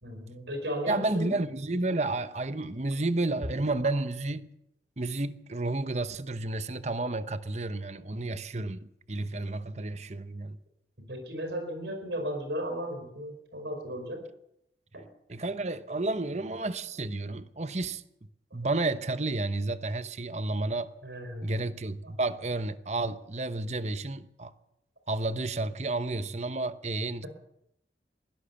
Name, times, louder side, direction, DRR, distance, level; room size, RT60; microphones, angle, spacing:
voice 1, 0.0-1.4 11.1-14.2 14.9-15.0 15.9-16.2 21.0-21.6, equal, 80° right, 4.9 m, -35 dB
voice 2, 0.9-4.5 5.0-10.6 15.3-18.0 18.5-20.9 21.4-24.5 25.1-27.3, right 2 dB, 40° right, 1.0 m, -31 dB
22.5 x 17.0 x 7.0 m
head